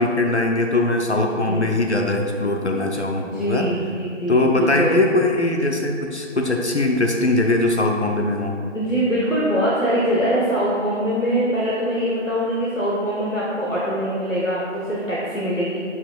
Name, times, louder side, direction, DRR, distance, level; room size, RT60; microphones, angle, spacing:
voice 1, 0.0-3.7 4.3-8.5, left 2 dB, 60° left, 2 dB, 0.8 m, -21 dB
voice 2, 3.2-5.0 8.7-15.8, equal, 90° left, -6 dB, 1.8 m, -23 dB
10.5 x 5.5 x 2.5 m, 2.4 s
figure-of-eight pair, 165°, 38 cm